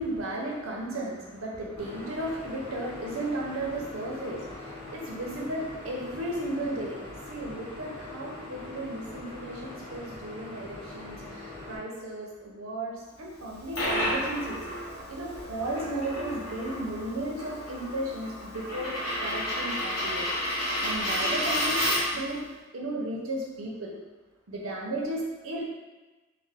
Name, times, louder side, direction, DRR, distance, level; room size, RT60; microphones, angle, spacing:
voice 1, 0.0-14.6 15.1-20.3 20.5-21.8 22.1-22.4 22.7-23.9 24.5-25.6, right 1 dB, 80° right, -2 dB, 0.7 m, -35 dB
sound 1, 1.8-11.8, left 2 dB, 10° left, 0.9 m, -42 dB
Coin (dropping), 13.4-22.3, equal, 85° left, 1.1 m, -31 dB
2.6 x 2.4 x 3.4 m, 1.2 s
head